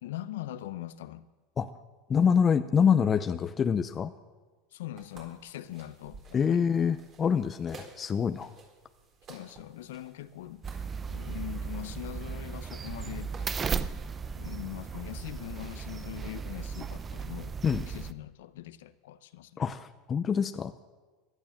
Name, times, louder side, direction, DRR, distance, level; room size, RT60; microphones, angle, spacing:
voice 1, 0.0-1.3 4.7-6.6 9.3-10.7 11.0-13.4 14.3-17.5 17.9-19.6, left 14 dB, 85° left, 0.8 m, -42 dB
voice 2, 2.1-4.1 6.3-8.5 17.6-17.8 19.6-20.7, left 7 dB, 30° left, 0.6 m, -26 dB
sound 1, 5.0-13.4, right 4 dB, 40° right, 4.2 m, -53 dB
sound 2, 10.6-18.1, right 6 dB, 25° right, 0.7 m, -36 dB
17.0 x 11.5 x 7.2 m
supercardioid pair, 115°, 0 cm